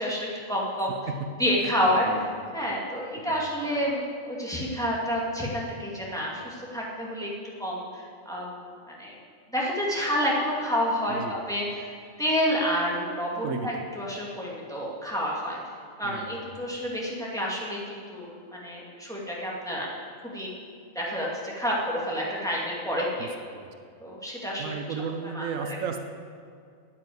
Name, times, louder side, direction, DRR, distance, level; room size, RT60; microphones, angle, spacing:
voice 1, 0.0-1.0 1.4-7.3 7.6-9.2 9.5-11.9 12.2-15.6 16.0-19.9 20.2-20.5 20.9-23.3 24.0-24.8 25.2-25.8, equal, 5° left, -5 dB, 2.3 m, -29 dB
voice 2, 13.4-13.8 16.0-16.4 23.2-23.3 23.5-23.7 24.6-26.0, right 5 dB, 80° right, 6 dB, 1.2 m, -34 dB
10.0 x 8.9 x 7.9 m, 2.3 s
omnidirectional pair, 1.4 m